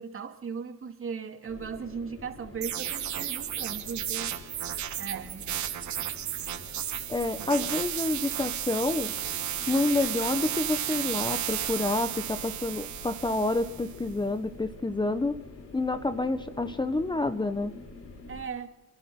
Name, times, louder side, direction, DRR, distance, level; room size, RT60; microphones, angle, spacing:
voice 1, 0.0-4.3 5.0-5.4 7.4-7.5 18.3-18.7, right 6 dB, 45° right, 5 dB, 2.4 m, -37 dB
sound 1, 1.5-18.5, left 3 dB, 55° left, 3.8 m, -47 dB
sound 2, 2.6-14.0, right 11 dB, 70° right, 1.6 m, -33 dB
voice 2, 7.1-9.1 9.7-15.4 15.7-17.7, left 2 dB, 15° left, 11 dB, 1.0 m, -28 dB
30.0 x 11.5 x 3.8 m, 0.98 s
cardioid pair, 90°, 30 cm